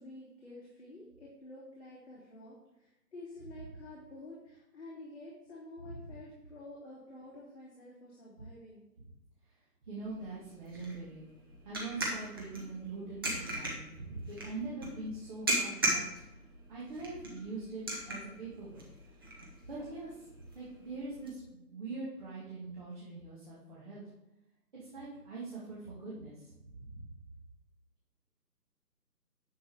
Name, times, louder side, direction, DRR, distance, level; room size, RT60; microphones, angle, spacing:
voice 1, 0.0-8.8, left 2 dB, 40° left, -7 dB, 2.9 m, -50 dB
voice 2, 9.9-11.3 11.7-16.1 16.7-18.9 19.2-20.1 20.5-24.0 24.7-27.1, right 3 dB, 30° right, -8 dB, 2.0 m, -43 dB
sound 1, 10.0-21.3, right 1 dB, 15° right, 0.9 m, -39 dB
10.0 x 7.6 x 3.5 m, 0.93 s
figure-of-eight pair, 155°, 49 cm